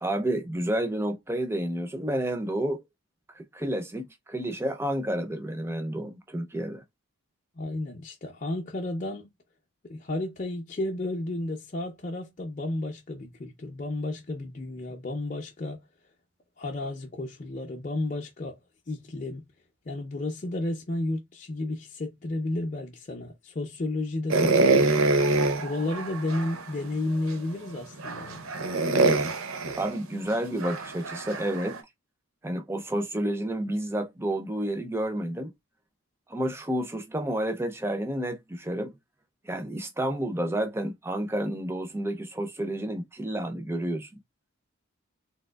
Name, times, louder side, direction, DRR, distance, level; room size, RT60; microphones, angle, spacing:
voice 1, 0.0-2.8 3.3-6.8 29.8-31.8 32.4-35.5 36.3-38.9 39.4-44.2, right 1 dB, 10° right, 0.5 m, -30 dB
voice 2, 7.6-9.3 9.8-15.8 16.6-18.6 18.9-19.5 19.8-25.1 25.6-28.5, left 2 dB, 35° left, 0.6 m, -32 dB
sound 1, 24.3-26.7 27.3-27.4 28.0-31.8, right 3 dB, 80° right, 0.7 m, -25 dB
3.4 x 2.8 x 2.3 m
head